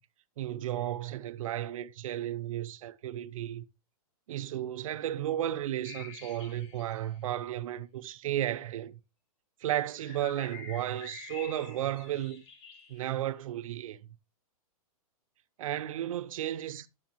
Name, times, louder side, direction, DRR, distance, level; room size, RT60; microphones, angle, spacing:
voice 1, 0.4-3.6 4.3-9.0 9.6-12.4 12.9-14.0 15.6-16.9, right 12 dB, 60° right, 0.6 m, -34 dB
sound 1, 5.8-7.2 10.0-13.2, left 5 dB, 50° left, 2.2 m, -48 dB
10.0 x 6.5 x 2.9 m
hypercardioid pair, 145°, 19 cm